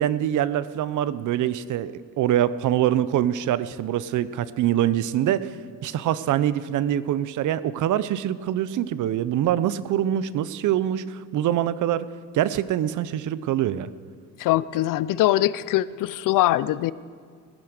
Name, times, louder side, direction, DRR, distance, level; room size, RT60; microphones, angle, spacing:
voice 1, 0.0-5.5 5.8-12.1 12.3-13.9, right 11 dB, 70° right, 16 dB, 0.7 m, -24 dB
voice 2, 14.4-16.9, left 15 dB, 75° left, 18 dB, 0.6 m, -22 dB
18.0 x 10.5 x 6.6 m, 2.1 s
cardioid pair, 125°, 32 cm